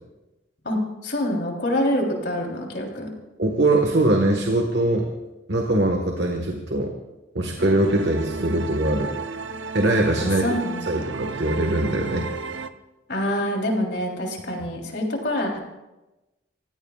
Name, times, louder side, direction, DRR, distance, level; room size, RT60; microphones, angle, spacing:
voice 1, 0.6-3.1 10.2-11.0 13.1-15.6, left 1 dB, 60° left, 0 dB, 3.4 m, -26 dB
voice 2, 3.4-5.1 5.5-6.9 7.3-9.1 9.7-10.6 10.9-12.3, right 1 dB, 65° right, 2 dB, 1.5 m, -22 dB
sound 1, 7.6-12.7, right 4 dB, 90° right, 0.8 m, -33 dB
29.0 x 16.5 x 2.4 m, 1.0 s
head